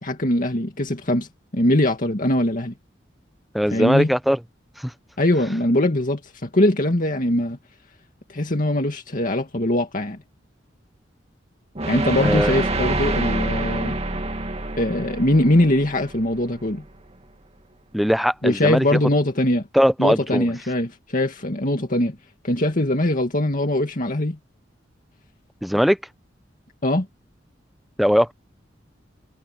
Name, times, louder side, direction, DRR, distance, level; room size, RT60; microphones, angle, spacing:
voice 1, 0.0-1.3 1.5-2.7 3.7-4.1 5.2-7.6 8.3-10.2 11.8-14.0 14.8-16.8 18.4-19.7 20.0-22.2 22.4-24.4 26.8-27.1, left 1 dB, 50° left, 2.2 m, -21 dB
voice 2, 3.5-4.4 4.8-4.9 12.2-12.6 17.9-19.0 19.7-20.5 25.6-26.0 28.0-28.3, equal, ahead, 0.6 m, -20 dB
sound 1, 11.7-16.8, right 2 dB, 35° right, 2.3 m, -27 dB
head